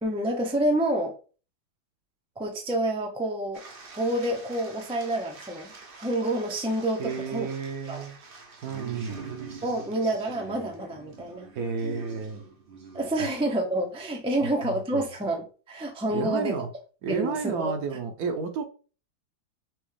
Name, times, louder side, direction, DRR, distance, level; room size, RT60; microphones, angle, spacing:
voice 1, 0.0-1.1 2.4-3.6 4.0-5.7 6.0-7.5 7.9-8.0 9.6-11.5 12.9-16.6 17.1-17.7, right 1 dB, 10° right, 0.3 m, -28 dB
sound 1, 3.5-13.8 14.3-14.7, right 5 dB, 50° right, 0.7 m, -45 dB
voice 2, 7.0-8.2 8.6-9.2 11.5-12.4 14.4-14.5 14.9-15.0 16.1-16.7 17.0-18.6, right 5 dB, 70° right, 1.2 m, -31 dB
6.1 x 2.3 x 3.3 m
omnidirectional pair, 1.8 m